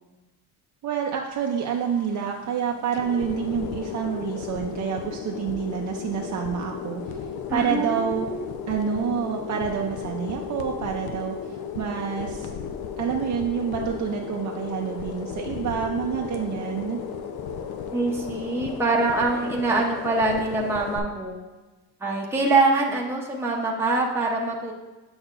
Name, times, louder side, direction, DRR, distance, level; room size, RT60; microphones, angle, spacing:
voice 1, 0.8-7.2 7.5-8.3 8.7-12.5 13.0-17.0, right 7 dB, 50° right, 1 dB, 0.6 m, -28 dB
sound 1, 1.3-21.0, left 7 dB, 75° left, 0.7 m, -35 dB
voice 2, 7.5-8.5 17.9-21.4 22.0-24.7, right 3 dB, 5° right, -2 dB, 0.7 m, -24 dB
7.9 x 6.3 x 2.5 m, 1.2 s
cardioid pair, 135°, 37 cm